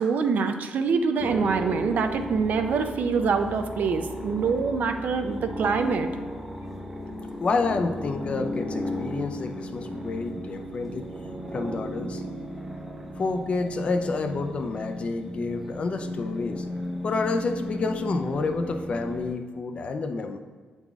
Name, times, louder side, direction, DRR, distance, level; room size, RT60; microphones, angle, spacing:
voice 1, 0.0-6.1, right 5 dB, 60° right, 7 dB, 0.5 m, -25 dB
sound 1, 1.2-19.3, equal, 5° right, 0.6 m, -35 dB
voice 2, 7.4-11.1 11.5-12.2 13.2-16.7 17.0-20.4, left 3 dB, 40° left, 6 dB, 0.4 m, -29 dB
8.3 x 4.1 x 3.5 m, 1.5 s
wide cardioid pair, 150°, 3 cm